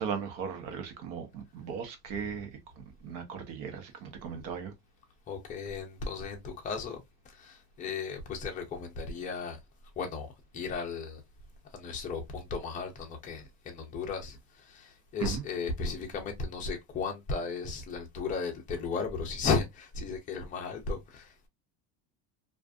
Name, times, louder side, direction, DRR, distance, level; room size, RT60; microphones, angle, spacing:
voice 1, 0.0-2.5 2.8-4.7 15.2-15.4, right 7 dB, 65° right, 1.0 m, -37 dB
voice 2, 2.1-2.5 4.3-4.5 5.3-9.6 10.0-11.2 11.7-21.5, left 4 dB, 20° left, 0.4 m, -35 dB
2.5 x 2.4 x 2.2 m
cardioid pair, 150°, 50 cm